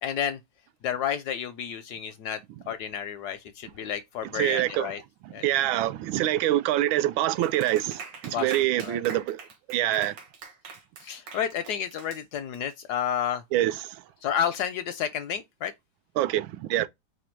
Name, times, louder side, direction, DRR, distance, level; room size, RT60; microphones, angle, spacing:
voice 1, 0.0-0.4 0.8-2.4 2.7-5.0 5.3-5.4 8.3-8.5 8.8-9.0 11.0-13.4 14.2-15.7, left 9 dB, 75° left, 0.9 m, -31 dB
voice 2, 4.3-4.9 5.2-9.4 9.7-10.2 13.5-14.0 16.2-16.9, right 14 dB, 90° right, 1.4 m, -25 dB
Clapping, 7.4-12.7, right 5 dB, 70° right, 1.8 m, -44 dB
5.0 x 2.2 x 4.4 m
omnidirectional pair, 2.1 m